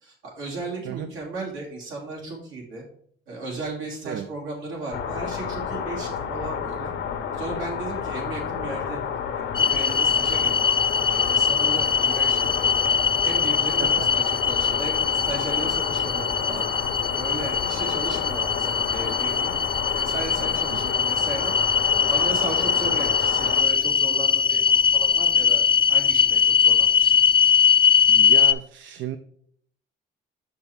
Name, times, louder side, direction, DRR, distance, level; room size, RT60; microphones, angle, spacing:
voice 1, 0.0-2.8 3.3-6.9 7.3-9.2 9.6-10.6 11.1-12.7 13.2-16.7 17.2-19.5 19.9-21.5 22.0-27.1, right 3 dB, 85° right, -2 dB, 2.8 m, -35 dB
sound 1, 4.9-23.6, left 7 dB, 80° left, 1.0 m, -30 dB
sound 2, 9.5-28.5, left 7 dB, 25° left, 0.4 m, -21 dB
voice 2, 28.1-29.2, right 10 dB, 70° right, 10 dB, 0.5 m, -33 dB
6.1 x 6.1 x 3.6 m, 0.64 s
cardioid pair, 90°, 20 cm